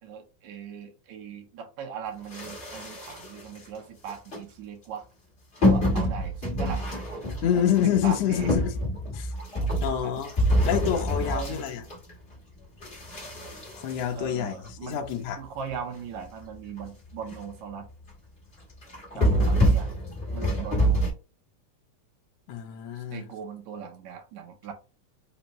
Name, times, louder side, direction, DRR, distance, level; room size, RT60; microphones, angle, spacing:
voice 1, 0.0-5.0 5.6-7.0 7.4-8.5 10.0-10.5 11.3-11.6 14.1-15.1 15.4-17.9 19.1-20.0 20.3-21.2 23.0-24.7, right 7 dB, 75° right, 2.1 m, -39 dB
sound 1, 2.3-3.6 4.1-4.4 5.6-12.3 12.8-14.9 15.4-15.5 15.7-15.8 16.3-16.4 16.7-16.9 17.1-17.6 17.9-18.1 18.8-21.1, equal, 35° left, 1.0 m, -26 dB
voice 2, 7.4-8.7 9.1-9.3 9.8-10.3 10.6-11.8 13.8-15.4 19.1-19.5 22.5-23.3, left 9 dB, 70° left, 1.6 m, -27 dB
5.2 x 2.2 x 2.9 m
omnidirectional pair, 3.5 m